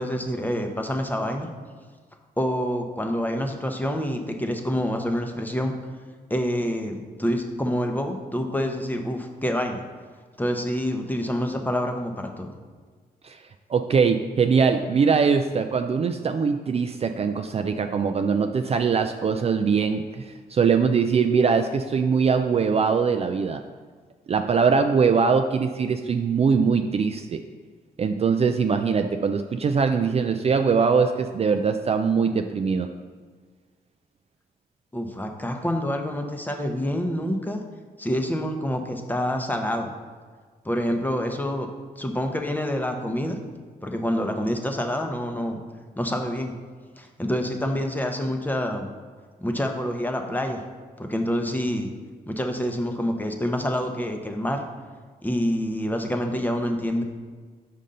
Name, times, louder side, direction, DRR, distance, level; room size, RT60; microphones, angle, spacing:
voice 1, 0.0-1.5 2.4-5.7 6.3-9.8 10.4-12.5 34.9-37.6 38.0-39.9 40.6-41.7 42.0-43.4 43.8-45.6 46.0-46.5 47.0-48.9 49.4-50.6 51.0-51.9 52.3-54.6 55.2-57.0, equal, 10° left, 4 dB, 0.8 m, -27 dB
voice 2, 13.7-23.6 24.3-27.4 28.0-32.9, right 5 dB, 40° right, 6 dB, 0.4 m, -22 dB
5.4 x 5.3 x 3.8 m, 1.5 s
cardioid pair, 75°, 16 cm